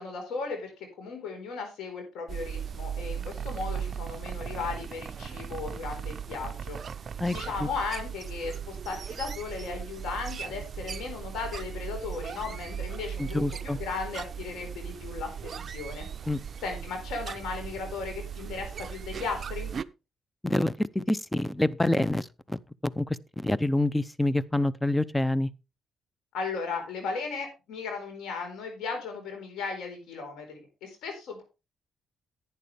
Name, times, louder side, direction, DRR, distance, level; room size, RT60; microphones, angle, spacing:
voice 1, 0.0-6.8 7.3-16.1 16.6-19.7 26.3-31.4, left 4 dB, 85° left, 4.4 m, -36 dB
sound 1, 2.3-19.8, right 8 dB, 45° right, 0.5 m, -37 dB
voice 2, 7.2-7.7 13.2-13.8 16.3-16.4 20.4-22.6 23.0-25.5, left 1 dB, 10° left, 0.6 m, -27 dB
11.0 x 9.4 x 3.5 m
cardioid pair, 90°, 0 cm